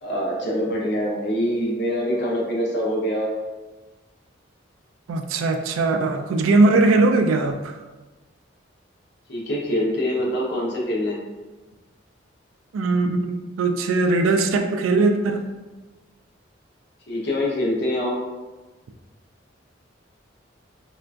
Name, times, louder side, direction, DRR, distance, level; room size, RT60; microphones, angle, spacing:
voice 1, 0.0-3.3 9.3-11.2 17.1-18.2, equal, 55° left, -3 dB, 0.6 m, -24 dB
voice 2, 5.1-7.8 12.7-15.4, right 3 dB, 85° right, 7 dB, 0.3 m, -20 dB
3.7 x 2.4 x 2.2 m, 1.2 s
head